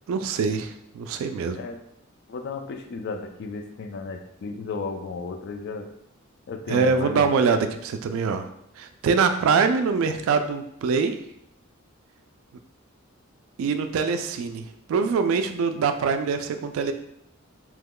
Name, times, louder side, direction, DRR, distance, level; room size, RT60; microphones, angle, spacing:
voice 1, 0.1-1.6 6.7-8.5 8.8-11.2 13.6-16.9, right 5 dB, 75° right, 8 dB, 0.3 m, -24 dB
voice 2, 2.3-5.9 6.5-7.3, left 4 dB, 55° left, 7 dB, 0.3 m, -34 dB
3.0 x 2.2 x 3.6 m, 0.77 s
head